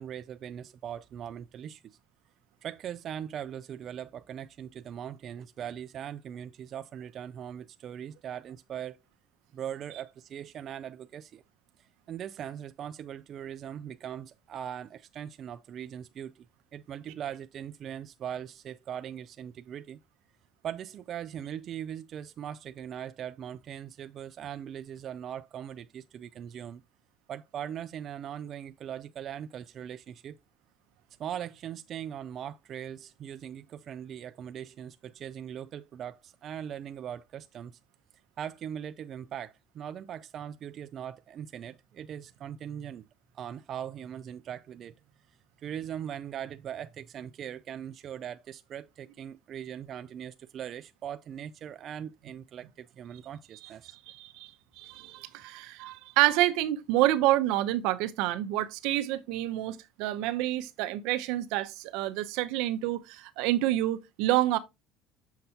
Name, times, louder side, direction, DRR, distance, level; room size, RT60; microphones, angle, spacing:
voice 1, 0.0-1.8 2.6-9.0 9.5-11.4 11.8-16.5 16.7-20.0 20.6-26.8 27.3-30.4 31.2-37.7 38.4-43.0 43.3-45.0 45.6-54.0, right 9 dB, 45° right, 0.3 m, -40 dB
voice 2, 54.1-54.5 54.8-64.6, right 15 dB, 80° right, 0.7 m, -28 dB
6.6 x 5.8 x 2.8 m
cardioid pair, 135°, 0 cm